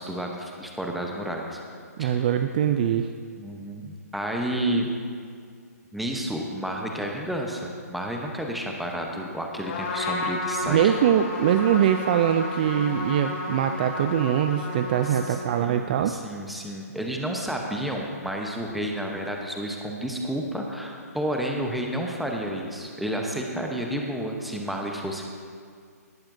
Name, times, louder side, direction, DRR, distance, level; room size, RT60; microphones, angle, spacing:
voice 1, 0.0-1.6 2.0-2.3 3.4-4.9 5.9-10.9 15.1-15.2 15.6-25.2, right 1 dB, ahead, 0 dB, 0.8 m, -31 dB
voice 2, 2.0-3.1 10.7-16.2, right 9 dB, 30° right, 8 dB, 0.4 m, -23 dB
Trumpet, 9.6-15.8, left 2 dB, 40° left, 2.5 m, -32 dB
18.5 x 8.8 x 2.6 m, 2.2 s
hypercardioid pair, 150°, 9 cm